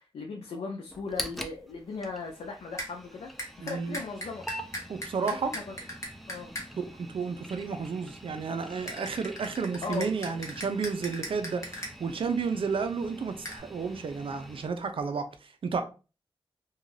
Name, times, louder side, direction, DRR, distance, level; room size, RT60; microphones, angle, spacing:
voice 1, 0.0-3.3 3.6-4.5 5.2-5.8 6.3-6.5 9.8-10.1, left 4 dB, 90° left, 0.4 m, -38 dB
sound 1, 0.9-14.7, equal, ahead, 0.4 m, -45 dB
sound 2, 2.8-2.9 3.4-6.7 8.9-11.9 13.4-13.6, equal, 30° left, 1.0 m, -38 dB
voice 2, 3.6-4.0 4.9-5.5 6.8-11.6 12.0-15.8, right 5 dB, 65° right, 0.5 m, -32 dB
2.5 x 2.3 x 3.1 m
wide cardioid pair, 100°, 10 cm